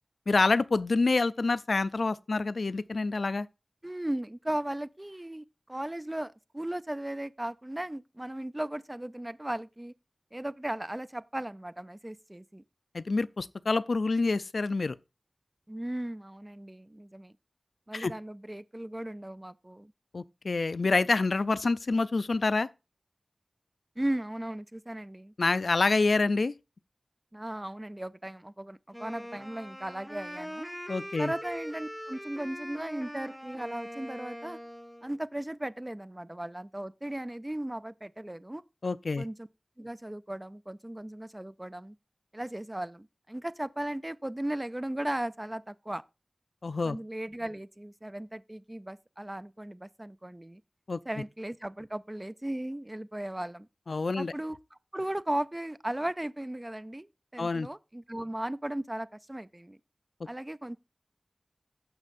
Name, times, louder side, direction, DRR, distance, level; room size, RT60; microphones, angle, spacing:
voice 1, 0.3-3.5 12.9-15.0 17.9-18.1 20.1-22.7 25.4-26.5 30.9-31.3 38.8-39.2 46.6-47.0 50.9-51.0 53.9-54.3 57.4-57.7, left 3 dB, 85° left, 0.4 m, -27 dB
voice 2, 3.8-9.9 10.3-12.6 15.7-17.3 17.9-19.9 24.0-25.3 27.3-30.7 31.2-34.6 35.0-38.6 39.2-39.5 39.8-41.9 42.3-46.0 46.8-50.6 51.1-53.7 54.2-57.1 57.3-59.8 60.2-60.8, right 1 dB, 20° right, 0.3 m, -36 dB
Wind instrument woodwind instrument, 28.9-35.1, equal, ahead, 1.8 m, -42 dB
16.0 x 6.2 x 2.5 m
wide cardioid pair, 65°, 0 cm